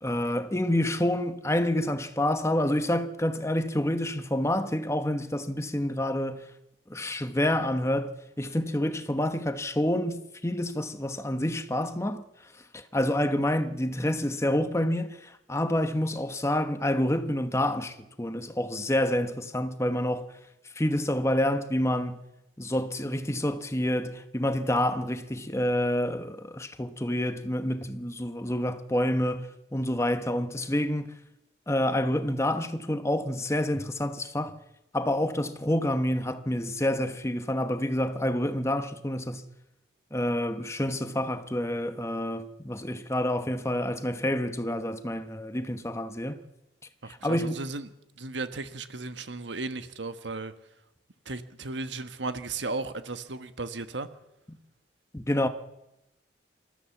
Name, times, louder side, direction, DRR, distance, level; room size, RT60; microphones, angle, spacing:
voice 1, 0.0-6.5 6.9-12.3 12.7-20.3 20.7-22.2 22.6-31.2 31.7-34.6 34.9-39.5 40.1-46.4 47.1-47.6 55.1-55.5, left 1 dB, 15° left, 1.1 m, -28 dB
voice 2, 47.0-47.9 48.2-50.5 51.2-54.1, right 3 dB, 80° right, 1.4 m, -35 dB
27.0 x 14.0 x 7.3 m
head